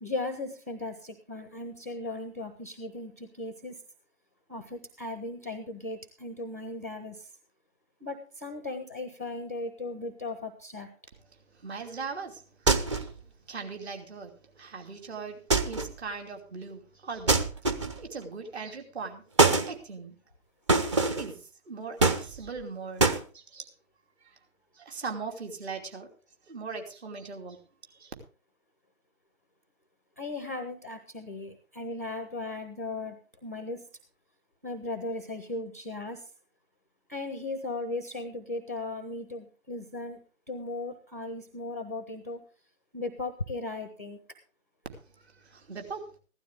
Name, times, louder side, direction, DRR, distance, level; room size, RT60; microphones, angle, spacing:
voice 1, 0.0-3.8 4.5-7.3 8.0-10.9 30.2-33.2 33.4-33.9 34.6-36.3 37.1-40.2 40.5-42.4 42.9-44.2, left 2 dB, 15° left, 9 dB, 0.5 m, -37 dB
voice 2, 11.6-13.1 13.5-17.5 18.0-19.2 19.7-20.1 20.8-23.7 24.7-26.1 26.5-27.6 28.0-28.1 45.4-46.1, right 4 dB, 50° right, 4 dB, 2.9 m, -40 dB
sound 1, 12.7-13.2 15.5-16.0 17.3-18.1 19.4-19.7 20.7-21.3 22.0-22.6 23.0-23.2, right 3 dB, 20° right, 0.7 m, -24 dB
15.5 x 12.0 x 3.6 m, 0.37 s
figure-of-eight pair, 145°, 40 cm